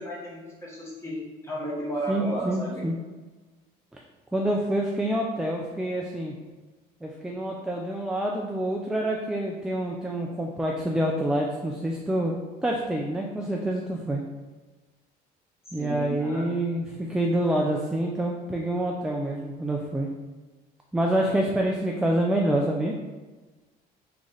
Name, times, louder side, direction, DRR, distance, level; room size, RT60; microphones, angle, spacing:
voice 1, 0.0-2.9 15.8-16.5, right 1 dB, 15° left, -5 dB, 1.5 m, -33 dB
voice 2, 2.1-3.0 3.9-4.0 4.3-6.4 7.0-12.4 12.6-14.2 15.7-20.1 20.9-22.9, right 1 dB, 5° right, 0 dB, 0.4 m, -27 dB
3.8 x 3.3 x 3.9 m, 1.3 s
cardioid pair, 110°, 17 cm